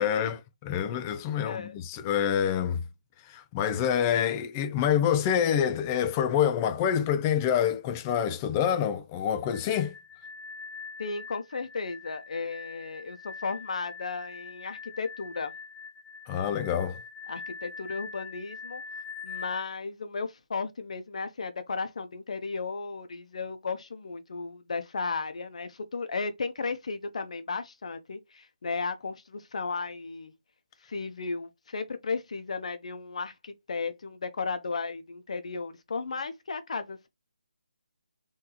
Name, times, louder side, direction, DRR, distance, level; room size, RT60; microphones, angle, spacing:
voice 1, 0.0-2.8 3.3-9.9 16.3-17.0, left 9 dB, 20° left, 0.3 m, -27 dB
voice 2, 1.4-1.8 11.0-15.5 17.3-18.8 19.2-30.3 30.9-37.1, left 4 dB, 60° left, 0.8 m, -35 dB
sound 1, 9.4-19.6, left 5 dB, 15° right, 1.3 m, -43 dB
3.8 x 2.7 x 2.7 m
figure-of-eight pair, 160°, 4 cm